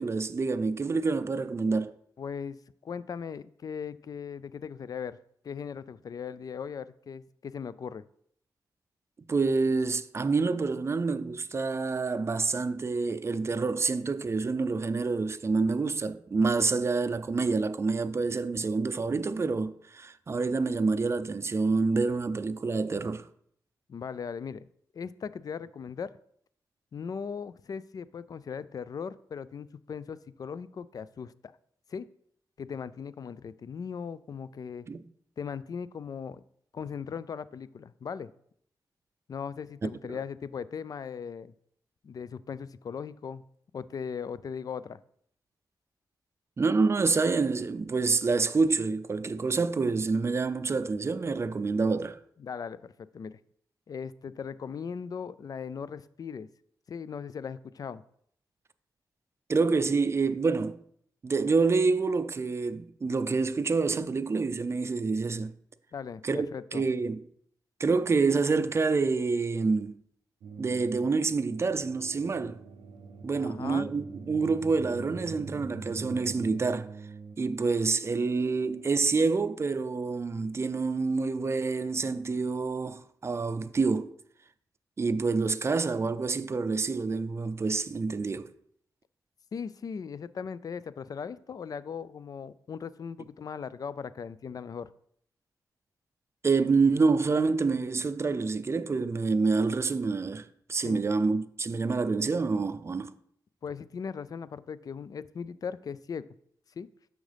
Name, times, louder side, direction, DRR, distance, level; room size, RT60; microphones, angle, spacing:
voice 1, 0.0-1.9 9.3-23.3 34.9-35.0 39.8-40.2 46.6-52.2 59.5-60.8 61.2-65.5 66.2-67.2 67.8-69.9 70.6-72.6 73.2-76.9 77.4-84.1 85.0-88.5 96.4-103.1, right 4 dB, 35° right, 0.4 m, -27 dB
voice 2, 2.2-5.2 5.4-8.0 23.9-24.7 24.9-26.1 26.9-31.5 31.9-32.1 32.6-34.9 35.4-36.4 36.7-38.3 39.3-41.5 42.0-43.4 43.7-45.0 52.4-53.4 53.9-56.5 56.9-58.0 65.9-66.8 73.4-73.9 89.5-94.9 100.8-101.1 103.6-106.3 106.8-106.9, left 6 dB, 55° left, 0.3 m, -38 dB
sound 1, 70.4-79.2, right 4 dB, 90° right, 0.6 m, -45 dB
6.3 x 6.2 x 3.4 m
cardioid pair, 60°, 8 cm